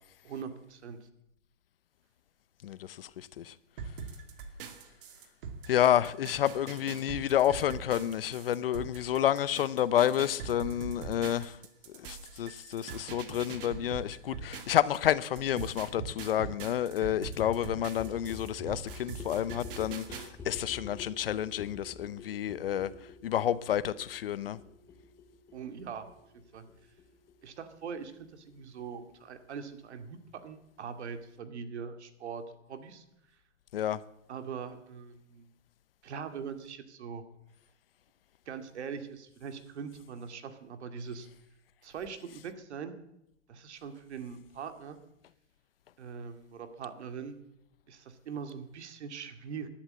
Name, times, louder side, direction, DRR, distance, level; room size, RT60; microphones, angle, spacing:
voice 1, 0.2-1.0 25.5-26.1 26.5-26.6 27.4-32.4 32.7-33.0 34.3-35.5 36.0-37.2 38.5-41.3 41.8-42.9 43.5-45.0 46.0-47.4 47.9-49.7, right 6 dB, 60° right, 2.3 m, -42 dB
voice 2, 2.6-3.5 5.7-11.6 11.9-22.9 23.2-24.6 33.7-34.0, left 11 dB, 50° left, 0.7 m, -29 dB
sound 1, 3.8-15.0 15.4-20.3, right 5 dB, 45° right, 2.4 m, -42 dB
sound 2, 17.3-28.8 29.1-29.2 29.4-29.5 29.7-29.8 30.0-30.1 30.3-30.4 30.6-30.7, left 3 dB, 5° left, 0.6 m, -47 dB
14.5 x 11.5 x 8.5 m
hypercardioid pair, 155°, 38 cm